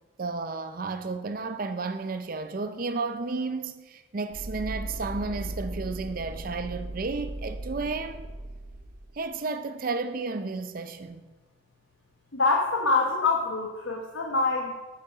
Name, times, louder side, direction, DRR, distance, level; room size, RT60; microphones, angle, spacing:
voice 1, 0.2-8.3 9.1-11.2, right 3 dB, 45° right, 0.5 m, -32 dB
sound 1, 4.3-9.2, right 1 dB, 90° right, 0.9 m, -37 dB
voice 2, 12.3-14.8, left 3 dB, 85° left, 1.1 m, -25 dB
8.6 x 8.0 x 6.2 m
head